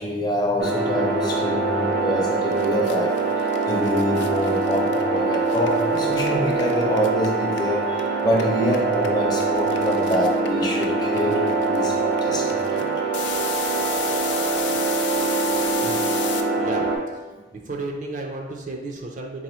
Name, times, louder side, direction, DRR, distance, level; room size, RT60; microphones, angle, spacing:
voice 1, 0.0-12.9 13.7-13.9 15.8-15.9 16.5-16.6 17.3-17.4, equal, 20° left, -1 dB, 0.6 m, -26 dB
sound 1, 0.6-17.0, right 3 dB, 80° right, 1.0 m, -24 dB
sound 2, 2.2-2.3 2.5-8.0 8.3-16.4, left 8 dB, 75° left, 0.4 m, -34 dB
voice 2, 17.5-19.4, right 2 dB, 40° right, 1 dB, 0.4 m, -32 dB
4.0 x 3.9 x 3.0 m, 1.2 s
head